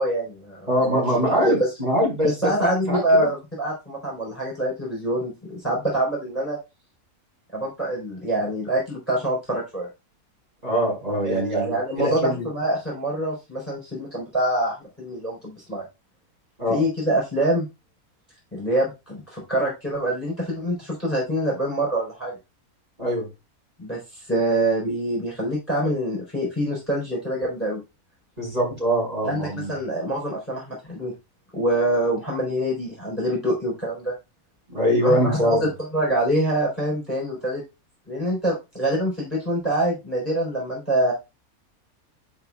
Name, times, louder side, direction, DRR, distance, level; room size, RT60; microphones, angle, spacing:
voice 1, 0.0-1.6 2.2-6.6 7.5-9.9 11.2-15.8 16.7-17.7 18.5-22.3 23.8-27.8 29.2-31.1 31.5-34.1 35.0-37.6 38.1-41.1, right 1 dB, 10° left, -3 dB, 4.2 m, -25 dB
voice 2, 0.7-2.3 2.6-3.3 10.6-12.4 16.6-16.8 23.0-23.3 28.4-29.7 34.7-35.7, equal, 25° right, -3 dB, 5.4 m, -23 dB
11.0 x 5.4 x 2.3 m, 0.25 s
omnidirectional pair, 1.5 m